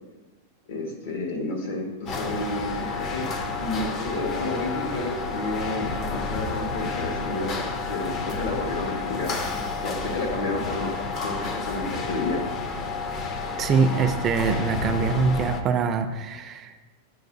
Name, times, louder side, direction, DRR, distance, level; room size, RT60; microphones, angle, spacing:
voice 1, 0.7-9.4 9.8-12.4, left 2 dB, 70° left, 1 dB, 1.5 m, -31 dB
sound 1, 2.1-15.6, left 4 dB, 25° left, 0.5 m, -30 dB
voice 2, 13.6-16.7, right 5 dB, 25° right, 7 dB, 0.4 m, -23 dB
9.3 x 4.6 x 2.6 m, 1.2 s
supercardioid pair, 155°, 0 cm